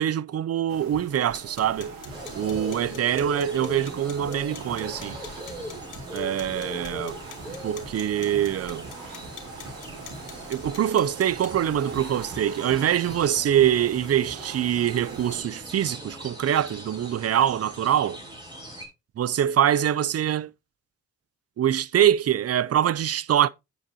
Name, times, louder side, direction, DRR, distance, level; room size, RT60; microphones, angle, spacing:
voice 1, 0.0-1.9 2.4-5.2 6.1-7.2 7.6-8.8 10.5-18.2 19.2-20.5 21.6-23.5, right 10 dB, 50° right, 0.5 m, -24 dB
sound 1, 0.7-15.4, right 3 dB, 90° right, 2.5 m, -42 dB
sound 2, 1.3-11.7, left 5 dB, 65° left, 2.2 m, -47 dB
sound 3, 2.1-18.9, equal, 15° right, 5.2 m, -41 dB
9.7 x 6.9 x 2.8 m
supercardioid pair, 50°, 33 cm